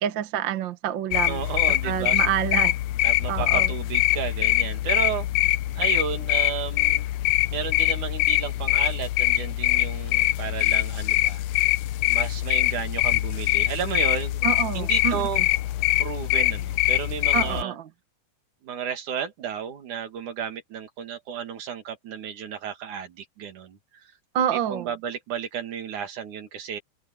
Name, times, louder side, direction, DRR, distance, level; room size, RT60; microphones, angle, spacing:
voice 1, 0.0-1.4 1.8-2.7 3.3-3.7 14.4-15.4 17.3-17.9 24.3-24.9, right 10 dB, 55° right, 1.3 m, -27 dB
sound 1, 1.1-17.6, left 17 dB, 75° left, 1.6 m, -23 dB
voice 2, 1.3-2.2 3.0-5.3 5.7-7.1 7.5-11.4 12.1-14.4 14.7-15.4 16.0-17.8 18.6-23.8 24.7-26.8, right 8 dB, 75° right, 3.6 m, -32 dB
omnidirectional pair, 3.5 m